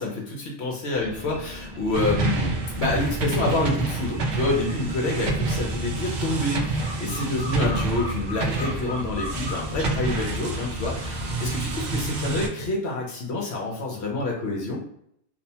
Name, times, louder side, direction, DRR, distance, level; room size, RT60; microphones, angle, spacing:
voice 1, 0.0-14.8, left 2 dB, 60° left, -1 dB, 0.8 m, -28 dB
sound 1, 0.9-11.7, equal, 20° right, 0.6 m, -39 dB
sound 2, 1.9-12.5, right 3 dB, 65° right, 0.8 m, -28 dB
sound 3, 4.7-4.8 5.1-9.8, left 2 dB, 30° left, 0.4 m, -37 dB
2.6 x 2.1 x 2.8 m, 0.72 s
omnidirectional pair, 1.4 m